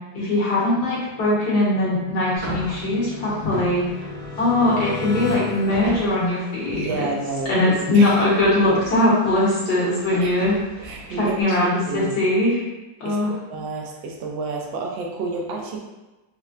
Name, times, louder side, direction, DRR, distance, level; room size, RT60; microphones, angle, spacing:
voice 1, 0.1-4.1 4.4-7.1 7.5-12.6 13.0-13.3, left 2 dB, 60° left, -7 dB, 1.4 m, -21 dB
sound 1, 1.4-7.0, left 2 dB, 15° right, 0.6 m, -34 dB
sound 2, 2.4-11.4, right 1 dB, 60° right, 1.0 m, -38 dB
voice 2, 6.7-7.5 7.9-8.2 8.9-9.0 10.2-10.3 10.8-12.2 13.0-13.2 13.5-15.8, right 3 dB, 80° right, 0 dB, 1.3 m, -29 dB
4.3 x 2.1 x 2.4 m, 1.1 s
omnidirectional pair, 2.1 m